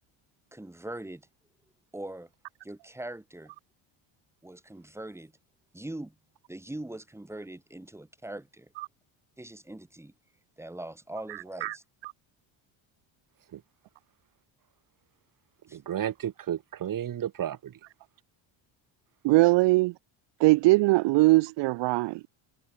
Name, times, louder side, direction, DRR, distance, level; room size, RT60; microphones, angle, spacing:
voice 1, 0.5-1.3 1.9-2.3 2.6-3.5 4.4-5.3 5.7-6.1 6.5-8.7 9.4-10.1 10.6-11.8 15.7-15.8, right 1 dB, 5° right, 4.3 m, -41 dB
voice 2, 11.3-11.8 12.0-12.1 19.2-19.9 20.4-22.3, right 21 dB, 65° right, 0.6 m, -22 dB
voice 3, 15.7-17.8, right 10 dB, 45° right, 2.4 m, -33 dB
cardioid pair, 140°, 47 cm